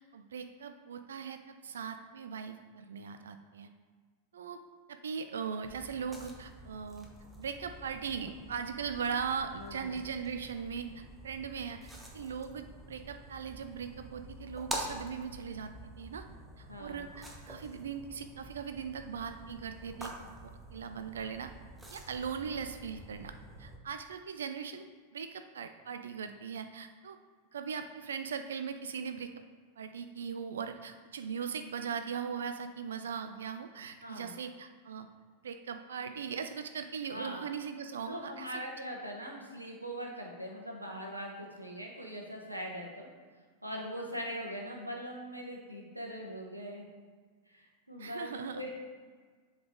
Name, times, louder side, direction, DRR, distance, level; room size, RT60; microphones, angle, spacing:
voice 1, 0.0-3.7 4.3-4.6 4.9-7.1 7.4-15.7 16.0-16.3 16.6-20.1 20.4-21.5 21.9-23.3 23.6-24.9 25.1-27.2 27.5-29.3 29.8-35.1 35.4-38.6 48.0-48.6, right 6 dB, 65° right, 8 dB, 0.3 m, -39 dB
sound 1, 5.6-23.8, right 1 dB, 10° right, 1.0 m, -47 dB
voice 2, 9.6-10.0 16.7-17.0 34.0-34.3 37.1-37.4 38.1-43.1 43.6-46.8 47.5-48.8, equal, 90° right, -1 dB, 1.1 m, -41 dB
7.6 x 4.0 x 3.6 m, 1.5 s
figure-of-eight pair, 90°, 0 cm